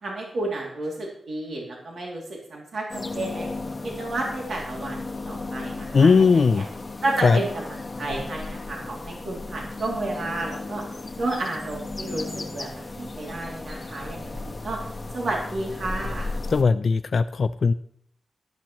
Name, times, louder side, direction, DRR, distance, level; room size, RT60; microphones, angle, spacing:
voice 1, 0.0-3.5 3.8-6.6 7.0-10.8 11.2-14.8 15.1-16.3, right 2 dB, 65° right, -1 dB, 2.6 m, -31 dB
sound 1, 2.9-16.6, left 2 dB, 25° left, 1.1 m, -35 dB
voice 2, 5.9-6.7 7.2-7.4 16.5-17.7, left 4 dB, 50° left, 11 dB, 0.3 m, -18 dB
13.0 x 12.0 x 3.0 m, 0.68 s
wide cardioid pair, 150°, 0 cm